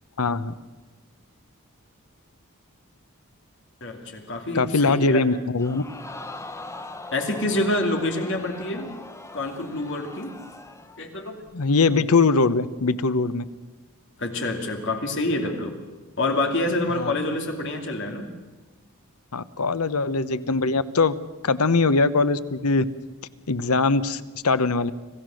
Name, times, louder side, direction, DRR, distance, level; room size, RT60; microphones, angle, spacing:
voice 1, 0.2-0.5 4.5-5.8 11.5-13.4 16.9-17.1 19.3-21.1 21.4-22.8 23.5-24.9, left 3 dB, 90° left, 14 dB, 0.9 m, -21 dB
voice 2, 3.8-5.2 7.1-8.9 9.3-10.4 11.0-11.3 14.2-15.8 16.2-18.3, left 2 dB, 55° left, 4 dB, 2.6 m, -27 dB
Crowd, 5.6-11.0 11.5-11.6, left 2 dB, 15° left, 0.9 m, -41 dB
26.0 x 16.0 x 6.4 m, 1.3 s
head